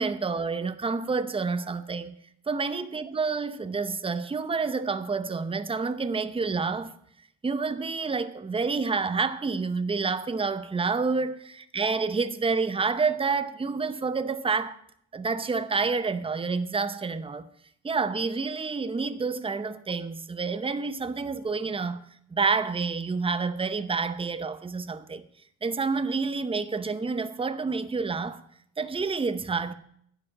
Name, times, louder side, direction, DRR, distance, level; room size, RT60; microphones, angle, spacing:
voice 1, 0.0-2.2 2.5-6.9 7.4-14.8 15.1-17.4 17.8-22.0 22.3-25.2 25.6-28.4 28.8-29.7, right 4 dB, 20° right, 0.7 m, -28 dB
11.0 x 5.1 x 8.5 m
cardioid pair, 90°, 30 cm